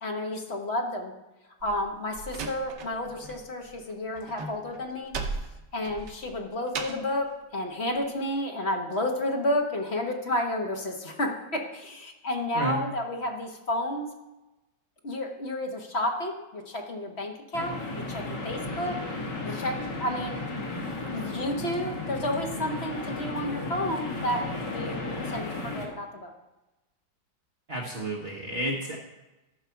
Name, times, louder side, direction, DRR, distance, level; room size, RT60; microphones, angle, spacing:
voice 1, 0.0-1.1 1.6-5.2 5.7-14.1 15.0-19.0 19.4-20.4 21.1-26.3, left 1 dB, 40° left, 2 dB, 1.3 m, -31 dB
Slam, 1.6-3.4 3.7-7.2, right 4 dB, 75° right, 1.5 m, -37 dB
sound 1, 17.5-25.9, left 2 dB, 80° left, 2.5 m, -34 dB
voice 2, 27.7-29.0, right 1 dB, 40° right, -1 dB, 1.3 m, -31 dB
13.0 x 5.7 x 5.7 m, 1.0 s
omnidirectional pair, 1.9 m